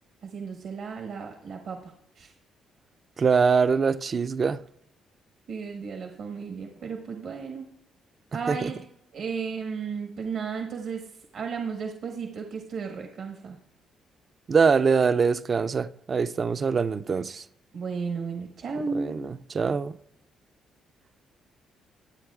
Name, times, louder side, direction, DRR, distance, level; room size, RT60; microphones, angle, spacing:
voice 1, 0.2-2.3 5.5-7.7 8.3-8.8 9.1-13.6 17.7-19.3, right 5 dB, 70° right, 1.3 m, -34 dB
voice 2, 3.2-4.6 8.5-8.7 14.5-17.4 18.9-20.0, right 5 dB, 40° right, 0.4 m, -23 dB
23.0 x 8.4 x 2.4 m
cardioid pair, 90°, 0 cm